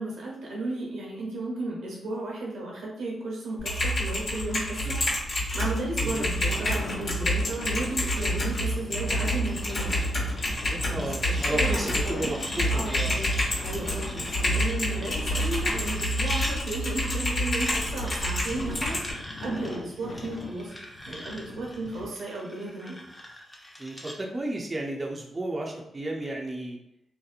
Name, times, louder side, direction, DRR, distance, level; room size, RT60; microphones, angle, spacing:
voice 1, 0.0-5.3 5.5-10.1 10.7-12.4 12.7-13.3 13.6-20.7 21.1-23.0, right 2 dB, 85° right, -3 dB, 0.7 m, -34 dB
Typing, 3.6-19.1, equal, 65° left, 1.1 m, -28 dB
voice 2, 6.0-6.3 10.9-13.2 13.7-13.8 23.8-26.8, right 1 dB, 30° right, 0 dB, 0.4 m, -33 dB
sound 1, 6.4-22.0, left 2 dB, 90° left, 0.3 m, -41 dB
sound 2, 7.5-16.5 17.5-24.2, equal, 15° left, 0.6 m, -44 dB
2.7 x 2.0 x 2.4 m, 0.76 s
supercardioid pair, 50°, 0 cm